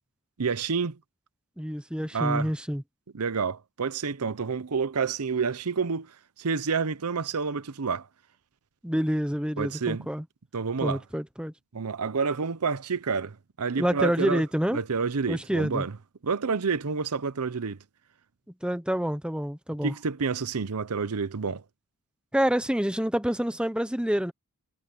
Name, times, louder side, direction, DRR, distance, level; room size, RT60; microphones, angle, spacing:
voice 1, 0.4-1.0 2.1-2.5 3.1-6.1 6.4-8.1 9.6-10.1 10.5-11.0 11.7-14.4 14.7-15.9 16.2-17.8 19.8-21.6, right 5 dB, 85° right, 0.8 m, -29 dB
voice 2, 1.6-2.8 8.8-10.2 10.8-11.5 13.8-14.8 15.3-15.8 18.6-19.9 22.3-24.3, equal, 5° right, 1.0 m, -27 dB
head